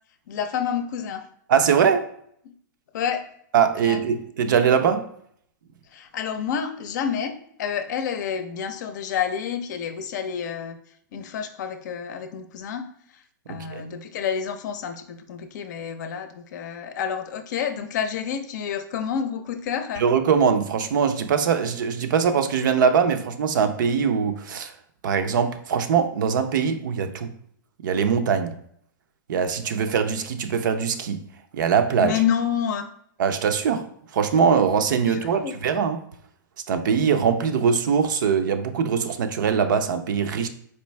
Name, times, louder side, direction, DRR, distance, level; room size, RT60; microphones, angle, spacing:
voice 1, 0.3-1.2 2.9-3.2 3.8-4.0 5.9-7.3 7.6-10.8 11.1-12.8 13.5-20.0 32.0-32.9 35.1-35.6, left 8 dB, 60° left, 0.6 m, -29 dB
voice 2, 1.5-2.1 3.5-5.1 13.5-13.9 20.0-24.7 25.0-27.3 27.8-28.6 29.3-31.2 31.5-32.2 33.2-33.9 34.1-36.0 36.7-40.5, right 6 dB, 70° right, 0.5 m, -22 dB
4.4 x 2.5 x 3.2 m
hypercardioid pair, 140°, 11 cm